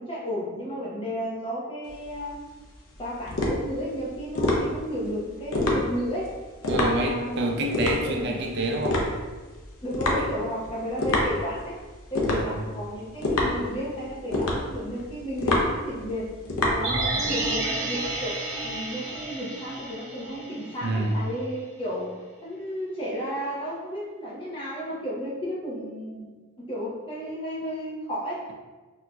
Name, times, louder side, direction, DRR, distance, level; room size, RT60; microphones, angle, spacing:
voice 1, 0.0-2.4 3.0-6.3 6.6-7.5 7.7-8.3 9.8-11.8 12.1-16.3 16.7-28.5, equal, 25° left, -6 dB, 0.7 m, -33 dB
sound 1, 1.9-17.4, left 2 dB, 75° left, 0.6 m, -28 dB
voice 2, 6.7-9.0 10.1-10.3 12.3-12.6 17.1-17.4 20.8-21.1, right 2 dB, 50° right, 1 dB, 0.5 m, -28 dB
sound 2, 16.8-21.0 21.3-21.4, right 2 dB, 35° right, 1.2 m, -31 dB
4.2 x 2.7 x 2.3 m, 1.3 s
head